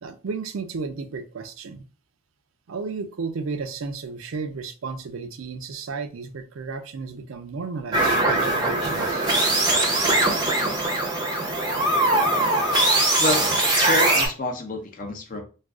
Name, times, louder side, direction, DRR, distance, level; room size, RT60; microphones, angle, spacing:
voice 1, 0.0-1.8 2.7-9.3, right 4 dB, 85° right, 0.4 m, -33 dB
sound 1, 7.9-14.3, right 2 dB, 20° right, 0.6 m, -21 dB
voice 2, 13.2-15.4, left 2 dB, 40° left, 0.6 m, -28 dB
2.4 x 2.3 x 3.5 m
head